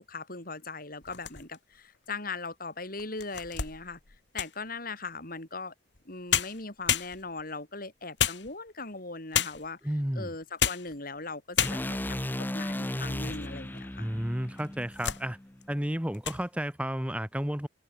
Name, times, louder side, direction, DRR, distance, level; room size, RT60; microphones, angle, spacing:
voice 1, 0.0-4.0 4.3-5.7 6.1-9.8 10.2-14.1, left 3 dB, 55° left, 5.1 m, -39 dB
sound 1, 1.0-1.8 2.4-2.5 3.0-4.7 6.0-6.1 6.3-7.5 8.2-8.9 9.3-9.8 10.4-11.0 11.2-11.3 11.6-12.1 12.7-13.5 13.8-13.9 14.6-15.3 15.6-15.8 16.1-16.4, left 9 dB, 75° left, 2.0 m, -31 dB
voice 2, 9.8-10.3 14.0-15.4 15.7-17.7, equal, 5° right, 1.2 m, -32 dB
sound 2, 11.6-15.8, left 1 dB, 10° left, 0.6 m, -35 dB
head